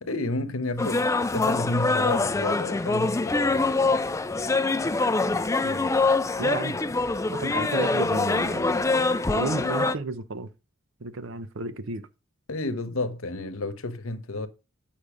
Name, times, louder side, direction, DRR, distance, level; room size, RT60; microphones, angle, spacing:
voice 1, 0.0-3.7 12.5-14.5, left 2 dB, 80° left, 1.0 m, -31 dB
sound 1, 0.8-9.9, left 3 dB, 15° left, 0.4 m, -24 dB
voice 2, 5.3-6.8 7.3-9.0 9.3-10.5 11.0-12.1, right 3 dB, 65° right, 0.8 m, -33 dB
8.8 x 5.5 x 5.0 m
head